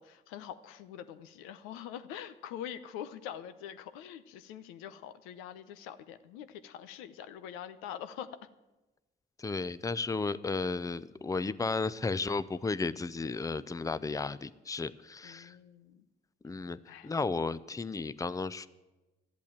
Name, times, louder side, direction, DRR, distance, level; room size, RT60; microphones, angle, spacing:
voice 1, 0.0-8.4 15.2-16.1 16.9-17.1, left 10 dB, 90° left, 11 dB, 0.7 m, -44 dB
voice 2, 9.4-15.5 16.4-18.7, left 4 dB, 15° left, 16 dB, 0.6 m, -34 dB
12.0 x 8.4 x 8.9 m, 1.1 s
supercardioid pair, 60°, 20 cm